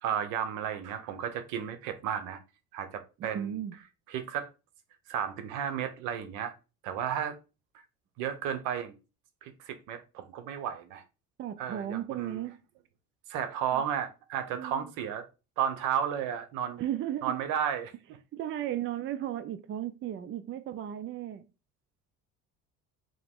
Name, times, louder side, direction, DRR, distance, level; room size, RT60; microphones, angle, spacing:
voice 1, 0.0-2.4 2.7-3.6 4.1-4.5 5.1-6.5 6.8-7.4 8.2-8.9 9.4-11.0 11.6-12.4 13.3-15.2 15.6-16.8 17.2-17.9, right 9 dB, 80° right, 0.8 m, -33 dB
voice 2, 3.2-3.7 11.4-12.6 13.7-13.8 14.5-14.9 16.8-17.4 18.3-21.5, right 11 dB, 45° right, 0.5 m, -35 dB
3.8 x 2.9 x 3.6 m
supercardioid pair, 95°, 30 cm